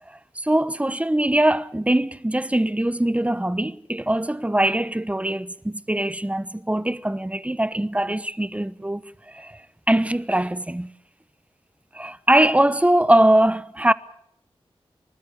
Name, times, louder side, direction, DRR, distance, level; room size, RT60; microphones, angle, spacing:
voice 1, 0.3-10.9 11.9-13.9, right 1 dB, 10° right, 1.0 m, -22 dB
30.0 x 13.0 x 8.6 m
wide cardioid pair, 65°, 11 cm